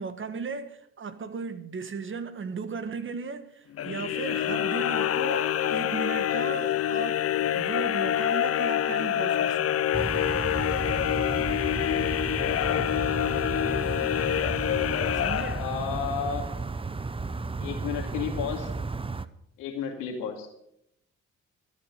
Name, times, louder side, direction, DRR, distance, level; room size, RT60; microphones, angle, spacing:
voice 1, 0.0-7.3 7.5-9.8 15.1-15.6, right 5 dB, 40° right, 1.5 m, -36 dB
sound 1, 3.7-16.0, left 11 dB, 55° left, 0.7 m, -26 dB
sound 2, 9.9-19.3, right 3 dB, 20° right, 0.7 m, -33 dB
voice 2, 15.6-16.5 17.6-18.7 19.6-20.5, left 7 dB, 85° left, 2.4 m, -32 dB
13.0 x 9.9 x 6.7 m
hypercardioid pair, 50°, 30 cm